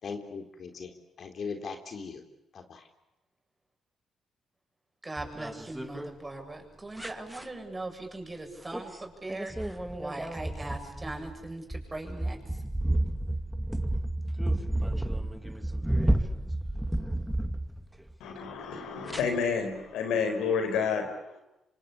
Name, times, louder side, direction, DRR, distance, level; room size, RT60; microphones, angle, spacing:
voice 1, 0.0-2.2 2.5-2.9, left 5 dB, 55° left, 5 dB, 3.5 m, -39 dB
voice 2, 5.0-12.4, right 2 dB, 20° right, 3 dB, 7.9 m, -40 dB
sound 1, 5.2-6.1 7.0-7.4 8.7-9.0 9.3-18.1 19.1-19.2, right 1 dB, 5° right, 2.3 m, -31 dB
voice 3, 18.2-21.4, left 6 dB, 85° left, 6 dB, 4.9 m, -30 dB
26.5 x 25.0 x 8.6 m, 0.91 s
supercardioid pair, 70°, 0 cm